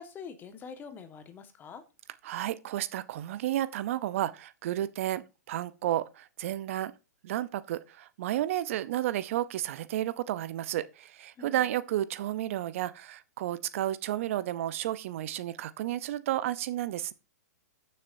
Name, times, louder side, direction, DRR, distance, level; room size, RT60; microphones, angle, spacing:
voice 1, 0.0-1.8 11.4-11.7, left 6 dB, 20° left, 1.5 m, -45 dB
voice 2, 2.2-6.9 7.2-17.1, right 13 dB, 50° right, 0.6 m, -32 dB
14.5 x 6.6 x 2.7 m
hypercardioid pair, 120°, 9 cm